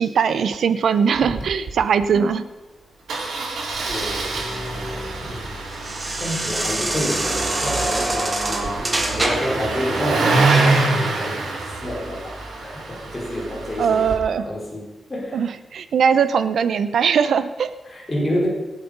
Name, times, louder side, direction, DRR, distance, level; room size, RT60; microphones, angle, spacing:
voice 1, 0.0-2.4 13.8-14.5 15.3-17.7, right 7 dB, 70° right, 13 dB, 0.8 m, -20 dB
Engine starting, 1.1-1.4 1.7-1.8 2.0-2.2 3.1-14.1, right 3 dB, 85° right, 4.3 m, -25 dB
voice 2, 2.1-2.4 3.9-4.3 5.2-5.6 6.2-11.5 11.8-14.1 14.4-15.5 17.9-18.5, left 1 dB, 15° left, -4 dB, 4.0 m, -29 dB
sound 1, 3.8-9.7, right 1 dB, 20° right, 1.9 m, -26 dB
25.5 x 8.5 x 5.4 m, 1.1 s
wide cardioid pair, 150°, 0 cm